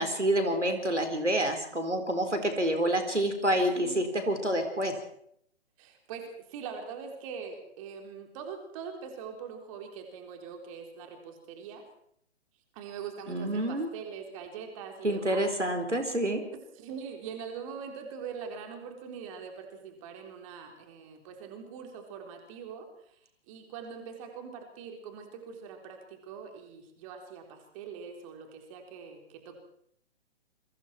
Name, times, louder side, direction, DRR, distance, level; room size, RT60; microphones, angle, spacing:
voice 1, 0.0-4.9 13.3-13.9 15.0-16.4, right 1 dB, 85° right, 6 dB, 4.4 m, -28 dB
voice 2, 5.8-11.8 12.7-15.4 16.8-22.9 23.5-29.6, right 6 dB, 30° right, 4 dB, 3.9 m, -42 dB
28.5 x 23.5 x 4.5 m, 0.70 s
figure-of-eight pair, 125°, 35 cm